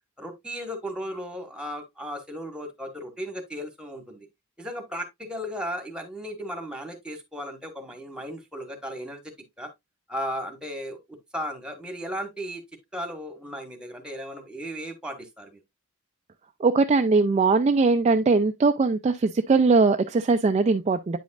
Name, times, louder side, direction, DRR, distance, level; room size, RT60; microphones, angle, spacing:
voice 1, 0.2-4.3 4.6-9.2 9.6-9.7 10.1-11.0 11.3-12.6 12.9-15.6, equal, 5° right, 1.3 m, -35 dB
voice 2, 16.6-21.2, right 4 dB, 30° right, 0.3 m, -20 dB
9.2 x 5.2 x 2.4 m
head